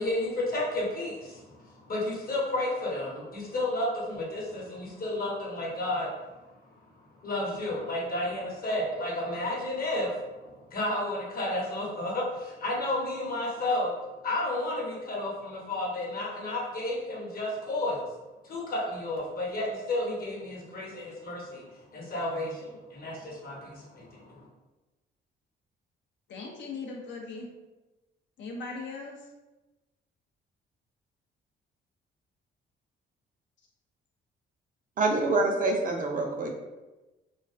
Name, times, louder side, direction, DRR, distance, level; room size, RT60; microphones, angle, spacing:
voice 1, 0.0-6.1 7.2-14.0 14.2-18.0 18.4-21.6 21.9-24.5, left 1 dB, 45° left, -3 dB, 0.9 m, -32 dB
voice 2, 26.3-27.5 28.4-29.2, left 3 dB, 65° left, 0 dB, 0.5 m, -39 dB
voice 3, 35.0-36.5, right 2 dB, 45° right, 2 dB, 0.4 m, -26 dB
2.3 x 2.3 x 2.4 m, 1.1 s
cardioid pair, 90°, 20 cm